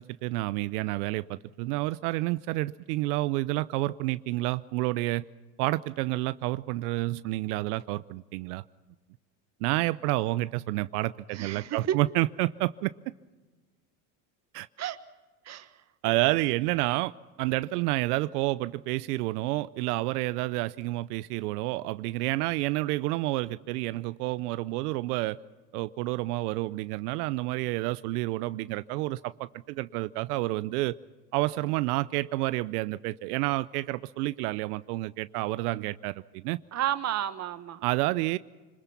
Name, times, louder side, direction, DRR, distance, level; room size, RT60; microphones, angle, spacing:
voice 1, 0.0-5.3 5.6-8.6 9.6-12.9 14.5-14.7 16.0-17.1 17.4-25.4 25.7-30.9 31.3-36.6 37.8-38.4, right 19 dB, 80° right, 0.6 m, -29 dB
voice 2, 11.3-12.0 14.8-15.0 15.4-15.8 36.7-37.8, right 11 dB, 35° right, 1.3 m, -31 dB
25.5 x 20.5 x 5.8 m
supercardioid pair, 115°, 45 cm